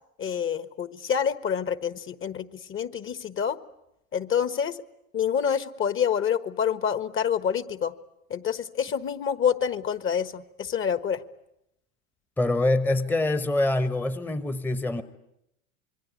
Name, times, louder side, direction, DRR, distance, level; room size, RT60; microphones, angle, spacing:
voice 1, 0.2-3.6 4.1-4.8 5.1-7.9 8.3-11.2, left 8 dB, 30° left, 14 dB, 1.4 m, -27 dB
voice 2, 12.4-15.0, left 2 dB, 5° left, 12 dB, 1.1 m, -25 dB
26.5 x 23.0 x 9.7 m, 0.83 s
hypercardioid pair, 95°, 42 cm